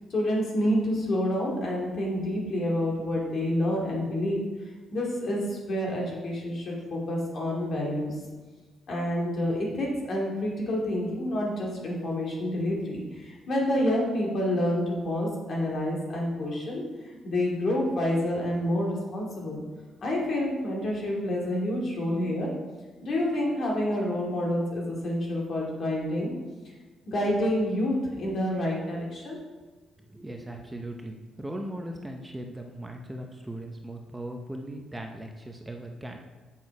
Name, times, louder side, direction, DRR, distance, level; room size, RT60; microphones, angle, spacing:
voice 1, 0.1-4.5 4.9-8.2 8.9-19.6 20.0-22.5 23.0-26.3 27.1-29.4, left 1 dB, 55° left, -2 dB, 2.3 m, -28 dB
voice 2, 30.0-36.2, right 1 dB, 10° right, 3 dB, 0.7 m, -38 dB
7.2 x 6.2 x 4.8 m, 1.3 s
cardioid pair, 110°, 0 cm